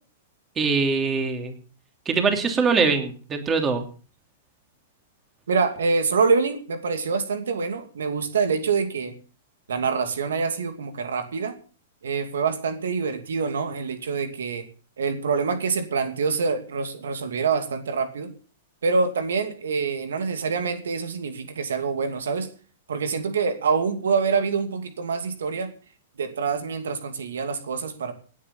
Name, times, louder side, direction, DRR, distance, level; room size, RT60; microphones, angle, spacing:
voice 1, 0.6-1.5 2.0-3.8, right 4 dB, 20° right, 5 dB, 3.2 m, -22 dB
voice 2, 5.5-9.1 9.7-11.5 12.0-14.7 15.0-18.3 18.8-22.5 22.9-25.7 26.2-28.1, right 5 dB, 85° right, 8 dB, 2.6 m, -25 dB
18.5 x 8.7 x 7.1 m, 0.40 s
hypercardioid pair, 130°, 0 cm